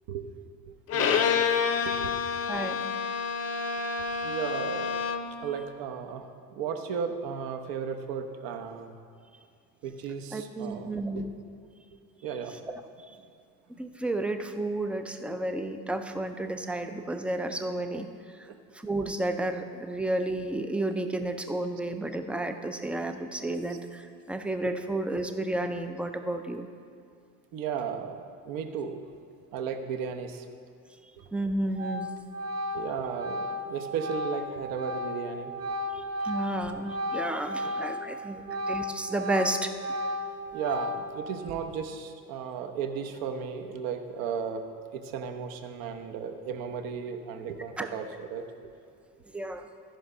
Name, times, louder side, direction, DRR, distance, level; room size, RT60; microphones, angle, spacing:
voice 1, 0.7-1.4 1.7-2.1 4.2-4.9 5.4-8.9 9.8-11.2 12.2-12.5 18.5-18.6 27.5-29.0 29.5-30.5 32.7-35.5 36.6-36.8 37.6-37.7 40.5-44.6 44.9-48.4, right 7 dB, 65° right, 6 dB, 0.9 m, -35 dB
Bowed string instrument, 0.9-5.4, left 6 dB, 40° left, 0.7 m, -28 dB
voice 2, 2.5-2.8 10.3-11.3 13.1-13.2 13.8-18.1 18.7-26.7 31.3-32.1 35.9-39.7 47.8-47.9 49.3-49.6, right 1 dB, 5° right, 6 dB, 0.3 m, -32 dB
Organ, 31.2-31.4 31.7-38.1 38.4-41.3, left 1 dB, 45° right, 1.2 m, -34 dB
13.5 x 5.2 x 5.5 m, 2.2 s
cardioid pair, 125°, 37 cm